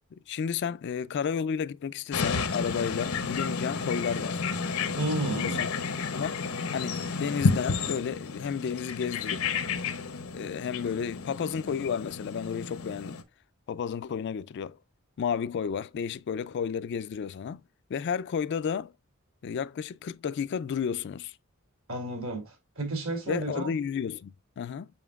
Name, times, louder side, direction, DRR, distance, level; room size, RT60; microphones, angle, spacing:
voice 1, 0.1-4.4 5.3-5.7 6.1-6.4 6.7-9.5 10.3-13.2 13.7-14.8 15.2-17.6 17.9-18.9 19.4-21.4 23.3-24.9, left 7 dB, 55° left, 0.3 m, -32 dB
sound 1, 2.1-13.2, left 4 dB, 85° left, 0.9 m, -31 dB
voice 2, 5.0-5.6 21.9-23.7, right 2 dB, 70° right, 2.6 m, -32 dB
7.0 x 5.8 x 2.3 m
head